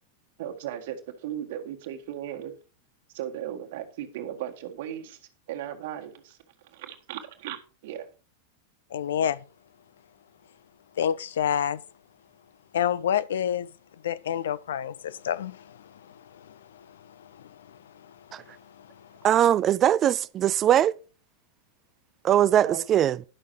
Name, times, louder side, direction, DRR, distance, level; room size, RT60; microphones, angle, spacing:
voice 1, 0.4-2.5 3.1-6.4 6.6-8.1 22.7-22.8, right 11 dB, 50° right, 1.8 m, -37 dB
voice 2, 8.9-9.4 11.0-11.8 12.7-13.7 14.0-15.8, left 9 dB, 60° left, 0.5 m, -27 dB
voice 3, 19.2-20.9 22.2-23.2, right 10 dB, 30° right, 0.4 m, -21 dB
11.0 x 6.4 x 4.8 m
figure-of-eight pair, 90°, 0 cm